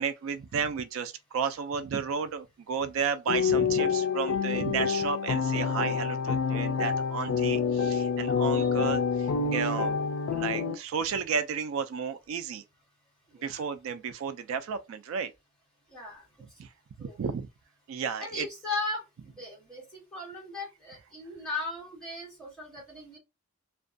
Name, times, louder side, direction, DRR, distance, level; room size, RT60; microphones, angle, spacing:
voice 1, 0.0-10.0 10.3-12.6 13.4-15.3 16.6-16.7 17.0-17.5 17.9-18.5, right 6 dB, 70° right, 0.3 m, -33 dB
sound 1, 3.3-10.8, left 6 dB, 70° left, 0.3 m, -27 dB
voice 2, 15.9-16.2 17.0-17.2 18.2-19.0 19.4-23.2, left 2 dB, 5° left, 1.4 m, -37 dB
2.5 x 2.2 x 2.5 m
head